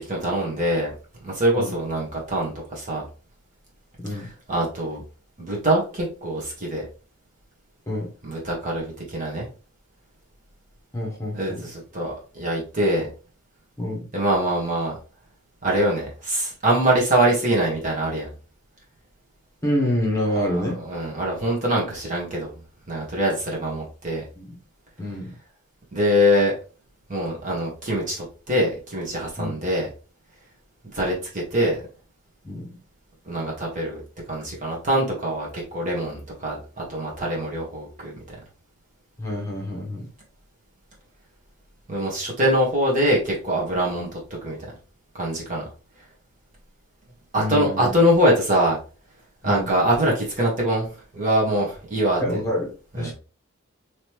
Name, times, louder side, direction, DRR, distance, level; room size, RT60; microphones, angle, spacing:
voice 1, 0.1-0.9 1.2-3.0 4.5-5.0 5.4-6.8 8.2-9.5 11.3-13.1 14.1-14.9 15.6-18.3 20.6-22.5 22.9-24.2 25.9-26.5 27.1-29.9 30.9-31.8 33.2-34.0 34.3-36.6 36.9-38.2 41.9-44.6 45.1-45.6 47.3-48.8 49.4-50.9 51.1-52.2 52.9-53.1, right 1 dB, 40° right, -3 dB, 1.6 m, -23 dB
voice 2, 10.9-11.7 13.8-14.1 19.6-20.8 24.3-24.5 25.0-25.4 29.4-29.6 32.4-32.7 39.2-40.1 47.3-47.9 49.4-49.7 52.2-53.1, left 1 dB, 15° left, -2 dB, 1.0 m, -27 dB
3.9 x 3.2 x 3.1 m, 0.35 s
head